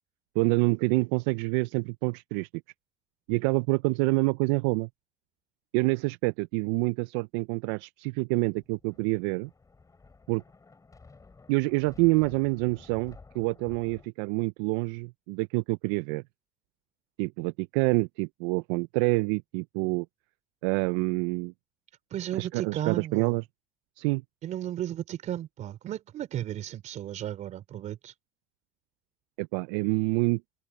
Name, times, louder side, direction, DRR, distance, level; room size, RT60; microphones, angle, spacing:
voice 1, 0.4-2.5 3.3-4.9 5.7-9.5 10.3-10.4 11.5-16.2 17.2-20.1 20.6-21.5 22.3-23.4 24.0-24.2 29.4-30.4, right 27 dB, 80° right, 0.4 m, -27 dB
Thunder, 8.6-14.1, left 4 dB, 25° left, 6.7 m, -53 dB
voice 2, 22.1-23.4 24.4-28.1, right 12 dB, 60° right, 4.3 m, -34 dB
open air
hypercardioid pair, 70°, 14 cm